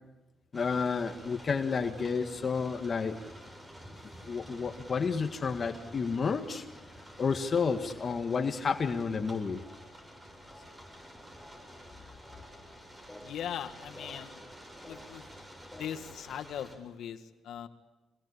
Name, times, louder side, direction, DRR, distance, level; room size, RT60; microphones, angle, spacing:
voice 1, 0.5-3.2 4.3-6.6 7.2-9.6, left 5 dB, 40° left, 6 dB, 1.9 m, -30 dB
sound 1, 0.5-16.8, equal, 20° right, 7.4 m, -50 dB
sound 2, 9.5-16.1, left 1 dB, 5° right, 7.9 m, -56 dB
voice 2, 13.2-14.5 14.8-15.3 15.7-17.7, left 9 dB, 75° left, 7 dB, 2.0 m, -40 dB
26.5 x 21.5 x 8.5 m, 1.1 s
cardioid pair, 90°, 0 cm